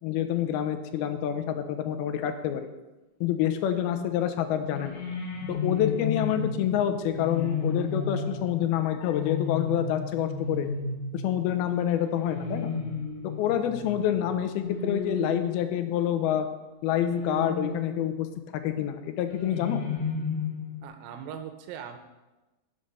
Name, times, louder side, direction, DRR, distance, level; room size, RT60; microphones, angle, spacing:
voice 1, 0.0-2.7 3.2-5.0 5.5-10.7 11.1-12.7 13.2-16.5 16.8-19.8, left 10 dB, 80° left, 9 dB, 2.6 m, -27 dB
sound 1, 4.6-16.2 17.0-18.3 19.2-20.8, left 5 dB, 60° left, 3.0 m, -33 dB
voice 2, 20.8-22.0, right 8 dB, 75° right, 7 dB, 2.4 m, -40 dB
11.5 x 6.6 x 5.4 m, 1.1 s
omnidirectional pair, 4.4 m